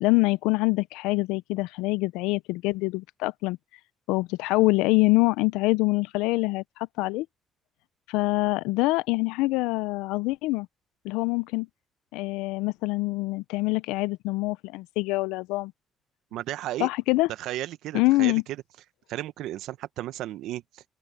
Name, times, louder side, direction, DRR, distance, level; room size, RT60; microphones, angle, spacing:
voice 1, 0.0-3.6 4.1-7.3 8.1-10.7 11.0-11.7 12.1-15.7 16.8-17.3 17.9-18.4, left 22 dB, 85° left, 0.4 m, -25 dB
voice 2, 16.3-16.9 17.3-18.4 19.1-20.8, right 14 dB, 75° right, 1.0 m, -34 dB
open air
supercardioid pair, 65°, 0 cm